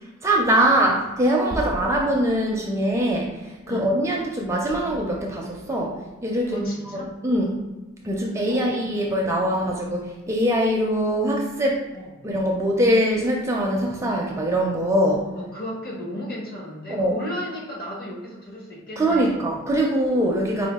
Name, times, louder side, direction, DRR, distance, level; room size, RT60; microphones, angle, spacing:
voice 1, 0.2-7.6 8.0-11.8 12.2-15.3 16.9-17.2 19.0-20.7, right 1 dB, 15° right, -1 dB, 0.4 m, -23 dB
voice 2, 6.5-7.1 8.5-8.8 11.9-12.1 15.3-19.4, left 1 dB, 50° left, -4 dB, 1.3 m, -34 dB
4.6 x 2.2 x 3.5 m, 1.1 s
head